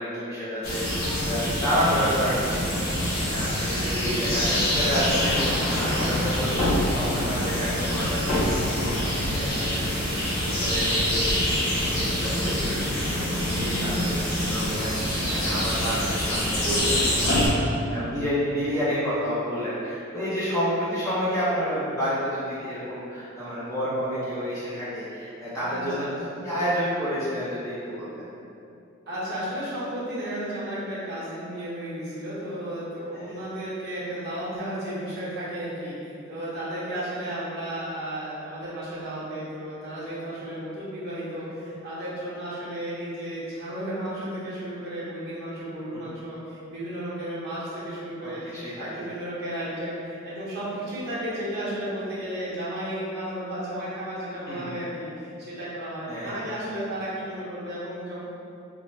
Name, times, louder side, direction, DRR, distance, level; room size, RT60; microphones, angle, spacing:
voice 1, 0.0-2.8 3.2-11.3 11.6-17.6 17.9-26.0 26.4-28.3 33.1-33.4 45.9-46.0 48.6-49.1 54.5-54.7 56.1-56.4, equal, 15° left, -12 dB, 0.6 m, -30 dB
sound 1, 0.6-17.5, equal, 75° left, 0.7 m, -25 dB
voice 2, 3.9-4.6 12.4-12.9 18.7-18.8 25.6-26.3 29.1-58.2, right 1 dB, 50° right, -10 dB, 0.8 m, -33 dB
2.7 x 2.0 x 3.1 m, 2.7 s
head